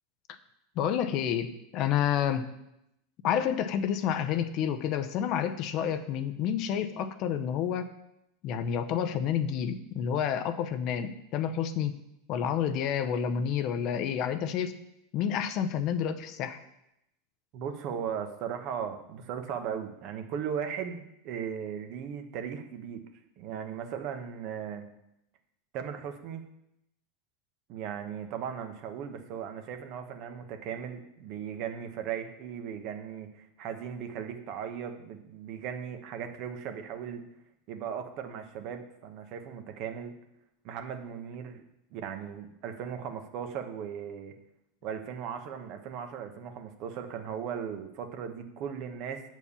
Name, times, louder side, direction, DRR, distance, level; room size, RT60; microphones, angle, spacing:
voice 1, 0.8-2.5 3.2-7.9 8.4-12.0 12.3-14.8 15.1-16.6, left 8 dB, 50° left, 10 dB, 0.7 m, -29 dB
voice 2, 17.5-23.0 23.4-24.9 25.7-26.4 27.7-37.2 37.7-40.1 40.6-41.6 41.9-44.3 44.8-49.2, right 8 dB, 55° right, 6 dB, 1.0 m, -37 dB
7.2 x 4.6 x 7.0 m, 0.82 s
supercardioid pair, 125°, 0 cm